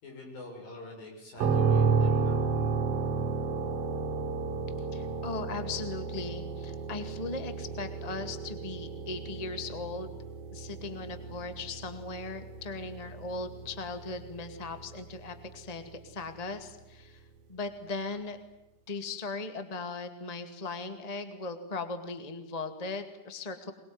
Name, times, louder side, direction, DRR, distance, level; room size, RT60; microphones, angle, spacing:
voice 1, 0.0-2.4, left 2 dB, 90° left, 1 dB, 8.4 m, -45 dB
sound 1, 1.4-15.1, right 4 dB, 50° right, 2.3 m, -32 dB
voice 2, 4.9-10.1 10.5-17.2 17.5-18.4 18.9-23.7, left 3 dB, 15° left, 8 dB, 1.5 m, -38 dB
23.5 x 21.5 x 9.7 m, 0.91 s
omnidirectional pair, 4.0 m